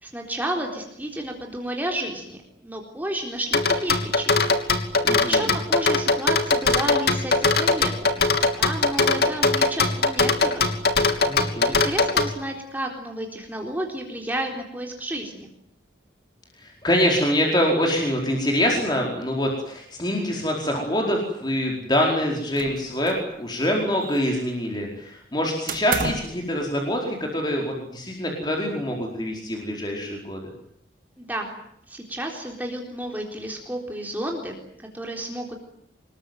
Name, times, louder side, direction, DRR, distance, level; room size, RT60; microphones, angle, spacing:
voice 1, 0.0-4.4 5.2-8.3 8.6-10.6 11.5-15.5 31.2-31.5 31.9-35.6, right 1 dB, 10° right, 1 dB, 3.9 m, -31 dB
sound 1, 3.5-12.3, left 3 dB, 55° left, 3.1 m, -20 dB
voice 2, 5.0-5.5 11.3-11.7 16.6-30.5, equal, 25° left, 0 dB, 4.8 m, -25 dB
sound 2, 22.6-23.3 23.6-24.5 25.7-26.4, right 4 dB, 45° right, 1.7 m, -32 dB
26.0 x 22.0 x 9.3 m, 0.74 s
head